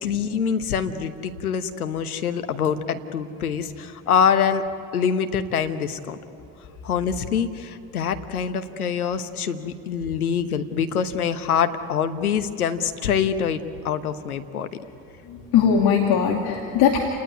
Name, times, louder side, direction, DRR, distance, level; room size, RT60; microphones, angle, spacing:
voice 1, 0.0-4.6 4.9-6.2 6.8-14.7, left 7 dB, 90° left, 9 dB, 1.2 m, -25 dB
voice 2, 15.3-17.0, left 7 dB, 60° left, 1 dB, 2.6 m, -20 dB
29.5 x 19.0 x 9.5 m, 2.8 s
hypercardioid pair, 60°, 43 cm